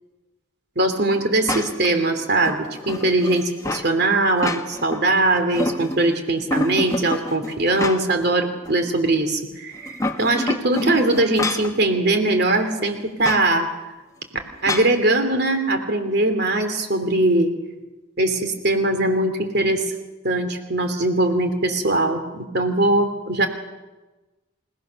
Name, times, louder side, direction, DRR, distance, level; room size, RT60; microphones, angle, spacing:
voice 1, 0.7-13.7 14.6-17.5 18.2-19.8 20.2-23.5, right 2 dB, 50° right, 7 dB, 3.1 m, -21 dB
sound 1, 1.5-1.9 2.4-3.9 4.3-5.0 5.3-6.1 6.5-8.3 8.7-8.8 9.8-11.8 13.2-13.5 14.7-15.0, left 2 dB, 15° left, 1.3 m, -28 dB
29.0 x 19.0 x 6.6 m, 1.1 s
head